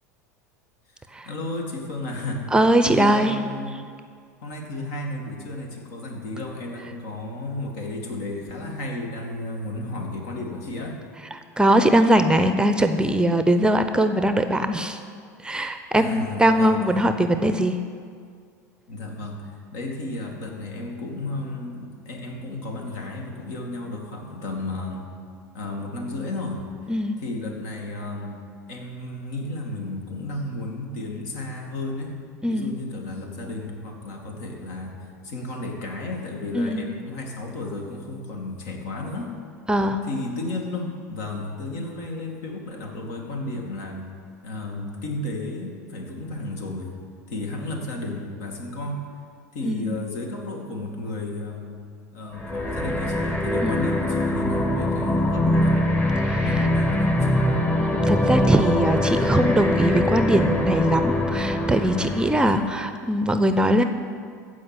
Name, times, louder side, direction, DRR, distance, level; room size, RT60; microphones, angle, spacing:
voice 1, 1.3-2.5 2.8-3.8 4.4-11.0 15.9-16.8 18.9-25.1 25.5-26.6 27.2-28.4 28.7-32.2 32.5-39.4 40.0-44.0 44.4-46.9 47.3-49.0 49.5-51.8 52.1-55.8 56.4-57.4 62.5-62.6, left 2 dB, 65° left, 1 dB, 2.3 m, -33 dB
voice 2, 2.5-3.4 11.6-15.0 15.4-17.8 26.9-27.2 32.4-32.7 36.5-36.9 39.7-40.0 49.6-50.0 53.6-53.8 56.3-56.7 57.8-63.8, right 1 dB, 10° right, 8 dB, 0.7 m, -21 dB
sound 1, 52.4-62.9, left 1 dB, 15° left, 1.3 m, -23 dB
15.0 x 5.1 x 7.8 m, 2.2 s
hypercardioid pair, 85°, 9 cm